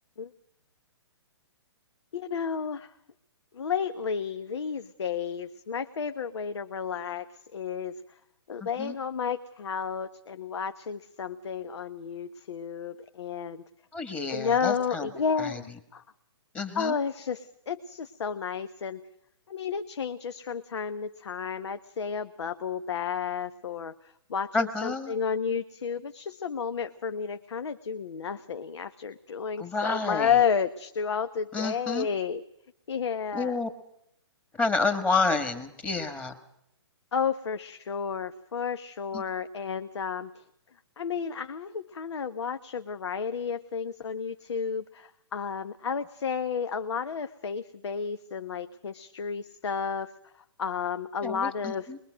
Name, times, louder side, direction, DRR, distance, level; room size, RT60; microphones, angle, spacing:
voice 1, 2.1-2.9 3.5-7.2 7.5-8.0 8.5-13.6 14.3-16.0 16.7-19.0 19.5-23.9 24.3-32.4 32.9-33.6 37.1-40.3 41.0-50.1 50.6-51.9, left 6 dB, 80° left, 10 dB, 1.3 m, -31 dB
voice 2, 8.6-8.9 13.9-15.1 15.4-15.6 16.5-17.0 24.5-25.1 29.6-30.3 31.5-32.1 33.3-33.7 34.6-36.4 39.1-39.2 51.2-52.0, left 3 dB, 10° left, 9 dB, 1.5 m, -29 dB
23.0 x 22.0 x 6.3 m, 0.77 s
hypercardioid pair, 160°, 14 cm